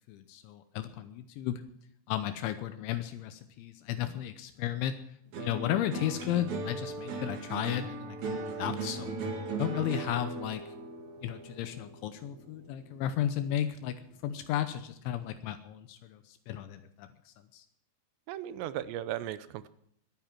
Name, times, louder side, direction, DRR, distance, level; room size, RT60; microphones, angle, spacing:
voice 1, 0.1-1.6 2.1-4.9 5.4-9.1 9.6-10.6 11.2-17.7, left 11 dB, 80° left, 9 dB, 3.2 m, -34 dB
sound 1, 5.3-13.8 14.1-14.7, right 3 dB, 50° right, 2.6 m, -38 dB
voice 2, 18.3-19.7, right 12 dB, 80° right, 13 dB, 2.7 m, -36 dB
21.5 x 9.1 x 6.0 m, 0.68 s
omnidirectional pair, 5.5 m